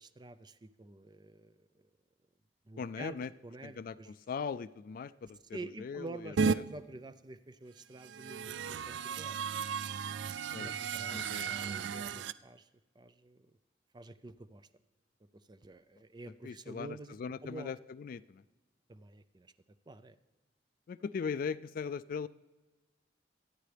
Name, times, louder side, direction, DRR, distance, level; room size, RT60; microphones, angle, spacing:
voice 1, 0.0-1.7 2.7-4.1 5.5-9.4 10.5-12.7 13.0-13.5 13.9-14.7 15.5-17.1 17.4-17.7 18.9-19.5 19.9-20.2, right 2 dB, 25° right, 12 dB, 0.5 m, -48 dB
voice 2, 2.8-3.3 3.6-6.6 10.5-10.7 11.1-11.5 12.1-12.2 16.4-18.4 20.9-22.3, left 6 dB, 50° left, 16 dB, 0.3 m, -40 dB
sound 1, 6.4-6.6 8.0-12.3, right 6 dB, 85° right, 0.3 m, -34 dB
23.5 x 9.1 x 3.4 m, 1.2 s
head